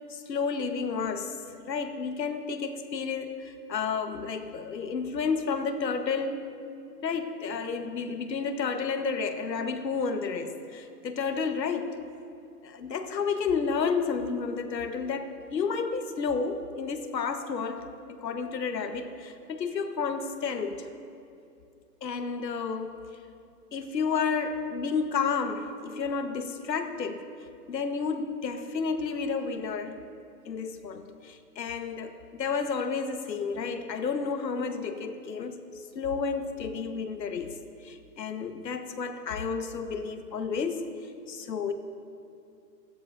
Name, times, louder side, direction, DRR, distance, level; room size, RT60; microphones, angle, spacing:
voice 1, 0.1-1.4 1.7-6.5 7.0-12.0 12.6-20.9 22.0-23.0 23.7-27.2 27.7-29.9 30.5-35.6 35.9-40.9 41.3-41.7, left 5 dB, 80° left, 7 dB, 1.3 m, -31 dB
17.0 x 13.5 x 2.6 m, 2.5 s
hypercardioid pair, 165°, 50 cm